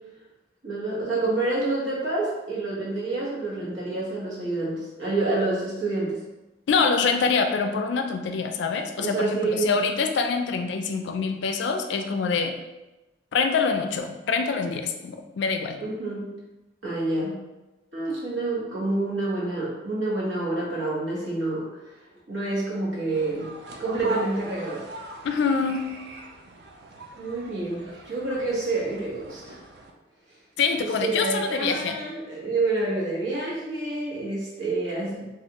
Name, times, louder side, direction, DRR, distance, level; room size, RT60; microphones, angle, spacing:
voice 1, 0.6-6.2 9.0-9.7 15.8-16.3 16.8-17.4 17.9-21.8 22.3-24.9 27.1-29.6 30.8-35.3, right 2 dB, 75° right, -6 dB, 1.1 m, -28 dB
voice 2, 6.7-12.5 13.3-15.8 25.2-25.8 30.6-32.0, left 5 dB, 65° left, 6 dB, 0.3 m, -25 dB
sound 1, 23.1-29.9, right 1 dB, 55° right, 0.4 m, -40 dB
3.3 x 2.4 x 2.8 m, 1.0 s
head